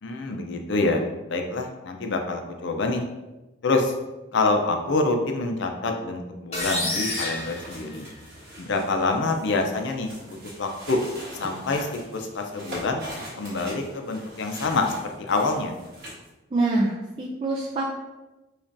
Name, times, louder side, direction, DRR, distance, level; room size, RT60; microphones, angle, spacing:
voice 1, 0.0-3.0 3.6-3.9 4.3-8.1 8.6-11.0 11.4-13.0 13.4-15.7, left 3 dB, 60° left, 4 dB, 0.5 m, -26 dB
sound 1, 6.5-8.5, left 2 dB, 35° left, 1.0 m, -30 dB
sound 2, 7.4-16.3, equal, 55° right, 1.2 m, -42 dB
voice 2, 16.5-17.9, right 2 dB, 25° right, -5 dB, 0.4 m, -25 dB
5.1 x 2.4 x 2.6 m, 1.1 s
head